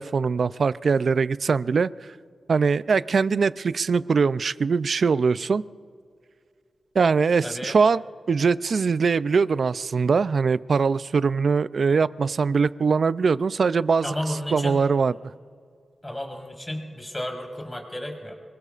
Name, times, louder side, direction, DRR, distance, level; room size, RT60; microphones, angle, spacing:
voice 1, 0.0-1.9 2.5-5.6 6.9-8.0 8.3-14.1 14.5-15.1, right 5 dB, 65° right, 16 dB, 0.4 m, -22 dB
voice 2, 7.4-7.7 14.0-14.8 16.0-18.3, left 1 dB, 15° left, 0 dB, 3.9 m, -32 dB
25.5 x 22.5 x 2.5 m, 2.3 s
wide cardioid pair, 85°, 0 cm